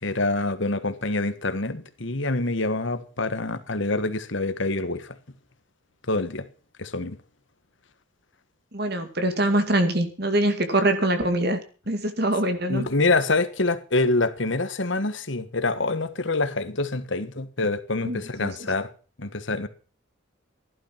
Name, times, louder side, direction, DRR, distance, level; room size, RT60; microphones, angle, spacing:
voice 1, 0.0-5.2 6.1-6.5 6.8-7.2 12.7-18.9 19.2-19.7, left 2 dB, 60° left, 1.5 m, -26 dB
voice 2, 8.7-11.6 11.9-12.9 18.0-18.5, right 1 dB, 50° right, 2.2 m, -24 dB
15.5 x 11.5 x 5.8 m
head